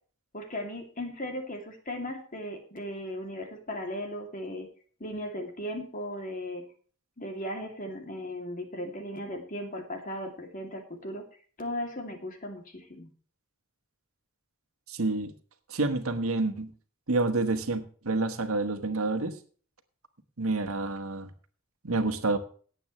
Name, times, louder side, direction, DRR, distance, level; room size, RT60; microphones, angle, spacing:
voice 1, 0.3-4.7 5.0-6.6 7.2-11.2 11.6-13.1, left 1 dB, 40° left, 4 dB, 2.6 m, -37 dB
voice 2, 14.9-15.3 15.7-16.7 17.1-19.4 20.4-21.3 21.8-22.4, right 2 dB, 90° right, 7 dB, 1.5 m, -28 dB
18.0 x 8.3 x 3.2 m, 0.43 s
head